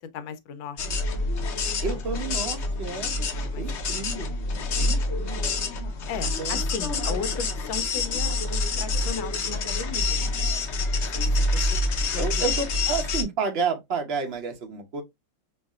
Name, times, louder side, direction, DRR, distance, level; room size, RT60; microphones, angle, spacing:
voice 1, 0.0-1.2 1.6-1.8 3.3-4.2 6.1-10.4 10.9-12.5, left 6 dB, 90° left, 1.4 m, -38 dB
sound 1, 0.8-13.2, left 2 dB, 60° left, 0.7 m, -27 dB
voice 2, 1.8-3.2 3.4-5.4 6.2-6.6 6.9-7.0 12.2-15.0, right 5 dB, 45° right, 0.8 m, -31 dB
5.5 x 2.6 x 2.3 m
omnidirectional pair, 2.0 m